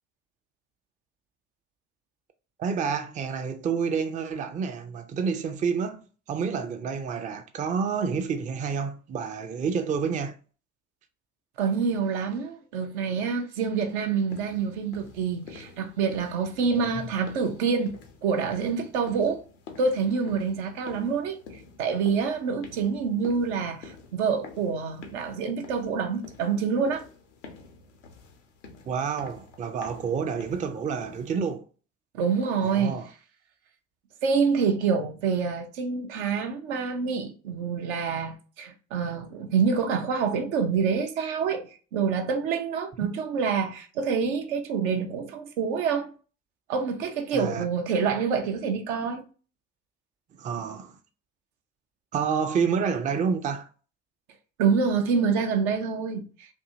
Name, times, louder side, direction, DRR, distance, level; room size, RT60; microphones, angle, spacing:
voice 1, 2.6-6.0 6.3-10.3 16.7-16.9 28.9-31.6 32.6-33.1 47.3-47.7 50.4-50.9 52.1-53.7, right 6 dB, 20° right, 0.4 m, -29 dB
voice 2, 11.6-19.4 19.8-21.4 21.8-27.0 32.1-33.0 34.2-46.1 46.7-49.2 54.6-56.5, right 5 dB, 65° right, 0.6 m, -27 dB
sound 1, 14.3-31.6, left 4 dB, 75° left, 0.6 m, -48 dB
2.6 x 2.6 x 2.6 m
figure-of-eight pair, 50°, 36 cm